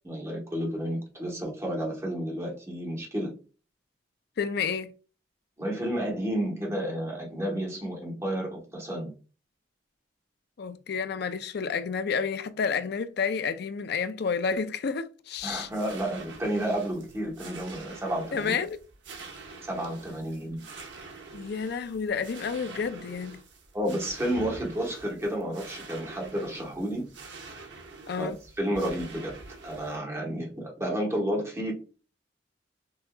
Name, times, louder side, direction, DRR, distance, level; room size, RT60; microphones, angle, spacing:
voice 1, 0.0-3.3 5.6-9.1 15.4-18.6 19.6-20.6 23.7-27.1 28.2-29.3 29.6-31.7, equal, 15° right, 1.2 m, -31 dB
voice 2, 4.4-4.9 10.6-15.7 18.3-18.8 21.3-23.4 28.1-28.4, left 5 dB, 60° left, 0.4 m, -30 dB
sound 1, 15.3-30.0, right 3 dB, 85° right, 0.9 m, -46 dB
5.5 x 2.7 x 2.2 m
head